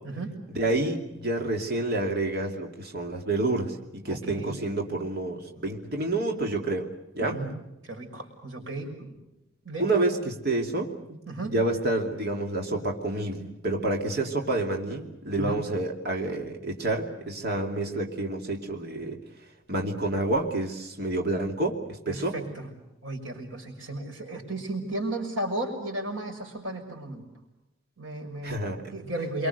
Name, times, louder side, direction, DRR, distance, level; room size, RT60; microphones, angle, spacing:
voice 1, 0.5-7.4 9.8-10.9 11.5-19.2 19.7-22.4 28.4-28.8, right 2 dB, 55° right, 2 dB, 2.7 m, -28 dB
voice 2, 4.1-4.6 7.2-7.5 7.9-9.1 9.6-9.9 11.3-11.5 15.4-15.6 22.1-22.7 23.0-27.2 28.0-29.5, right 1 dB, 85° right, 4 dB, 6.0 m, -34 dB
28.0 x 24.0 x 6.7 m, 0.92 s
head